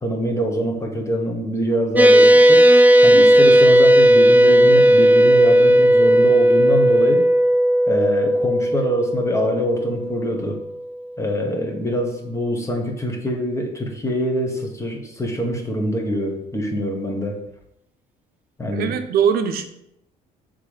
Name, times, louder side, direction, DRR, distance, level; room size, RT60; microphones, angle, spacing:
voice 1, 0.0-7.2 7.9-10.6 11.2-17.4 18.6-19.0, equal, 15° left, 3 dB, 1.3 m, -24 dB
sound 1, 2.0-10.6, right 1 dB, 10° right, 0.5 m, -14 dB
voice 2, 18.7-19.7, right 7 dB, 65° right, 7 dB, 0.7 m, -21 dB
6.8 x 3.8 x 5.0 m, 0.79 s
cardioid pair, 110°, 17 cm